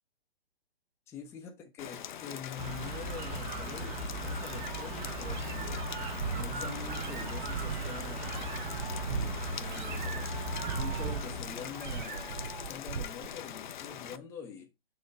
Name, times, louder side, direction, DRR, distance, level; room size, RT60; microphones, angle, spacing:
voice 1, 1.1-3.9 4.2-5.9 6.4-8.5 9.6-10.4 10.8-14.7, left 6 dB, 10° left, 0.7 m, -45 dB
Rain, 1.8-14.2, left 10 dB, 50° left, 0.5 m, -43 dB
sound 1, 2.6-11.9, right 2 dB, 20° right, 0.9 m, -38 dB
Meow, 4.0-13.3, right 7 dB, 50° right, 0.9 m, -39 dB
6.4 x 3.0 x 5.2 m
hypercardioid pair, 140°, 30 cm